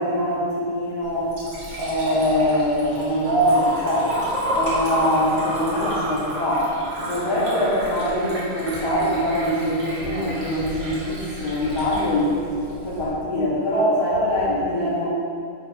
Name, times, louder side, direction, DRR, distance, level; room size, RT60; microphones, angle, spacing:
voice 1, 0.0-1.3 1.7-4.1 4.5-6.7 7.0-12.4 12.7-15.0, equal, 30° left, -9 dB, 2.7 m, -23 dB
Liquid, 1.0-13.0, equal, 45° right, 2.8 m, -30 dB
10.5 x 7.7 x 3.3 m, 2.4 s
omnidirectional pair, 4.0 m